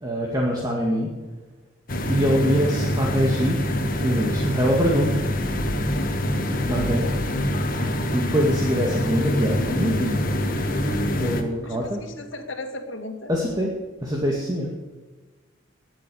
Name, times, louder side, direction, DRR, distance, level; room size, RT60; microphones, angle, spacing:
voice 1, 0.0-1.1 2.1-3.6 4.0-5.2 6.7-7.1 8.1-10.6 11.2-12.0 13.3-13.7 14.0-14.7, equal, 20° right, -2 dB, 2.1 m, -24 dB
sound 1, 1.9-11.4, left 1 dB, 45° left, 1.7 m, -25 dB
voice 2, 11.6-13.3, left 2 dB, 70° left, 5 dB, 2.1 m, -36 dB
19.5 x 7.9 x 7.1 m, 1.3 s
head